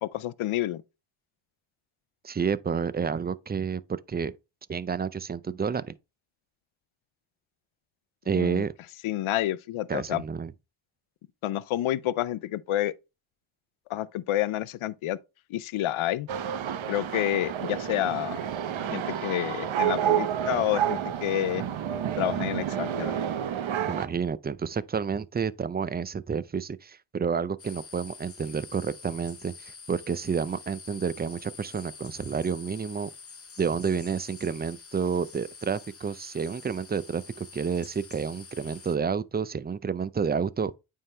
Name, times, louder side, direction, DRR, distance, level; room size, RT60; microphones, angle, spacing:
voice 1, 0.0-0.8 8.4-8.6 9.0-10.2 11.4-12.9 13.9-15.2 15.5-16.3 16.9-18.4 18.9-21.6 22.2-23.1, left 13 dB, 75° left, 0.6 m, -29 dB
voice 2, 2.2-4.3 4.7-6.0 8.3-8.7 9.9-10.5 23.9-33.1 33.6-40.8, right 6 dB, 20° right, 0.4 m, -30 dB
sound 1, 16.3-24.1, right 9 dB, 70° right, 0.8 m, -29 dB
sound 2, 27.6-39.0, left 5 dB, 30° left, 0.8 m, -47 dB
8.9 x 3.8 x 3.2 m
cardioid pair, 60°, 50 cm